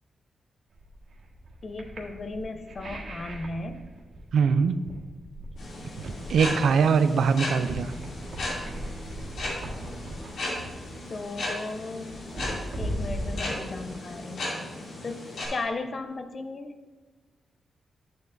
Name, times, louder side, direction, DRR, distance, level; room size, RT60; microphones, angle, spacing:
sound 1, 0.7-14.1, equal, 60° right, 1.8 m, -39 dB
voice 1, 1.6-3.8 11.1-14.5 15.0-16.8, left 3 dB, 35° left, 8 dB, 0.6 m, -36 dB
voice 2, 4.3-4.8 6.3-7.9, right 6 dB, 80° right, 11 dB, 0.4 m, -22 dB
sound 2, 5.6-15.5, left 1 dB, 80° left, 2.6 m, -36 dB
10.5 x 7.6 x 2.6 m, 1.3 s
wide cardioid pair, 165°, 0 cm